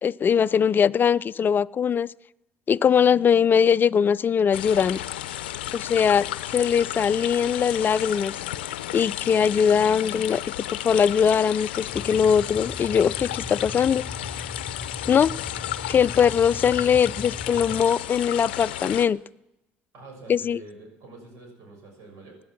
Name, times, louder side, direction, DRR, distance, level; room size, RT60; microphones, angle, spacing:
voice 1, 0.0-2.1 2.7-5.0 5.7-8.3 8.9-10.4 10.8-14.0 15.1-15.3 15.9-19.2 20.3-20.6, left 7 dB, 40° left, 18 dB, 0.4 m, -21 dB
sound 1, 4.5-19.1, left 13 dB, 90° left, 0.6 m, -33 dB
sound 2, 11.9-17.8, left 2 dB, ahead, 3.0 m, -39 dB
voice 2, 19.9-22.4, right 2 dB, 70° right, 3 dB, 6.5 m, -46 dB
16.5 x 11.0 x 6.0 m, 0.90 s
hypercardioid pair, 65°, 5 cm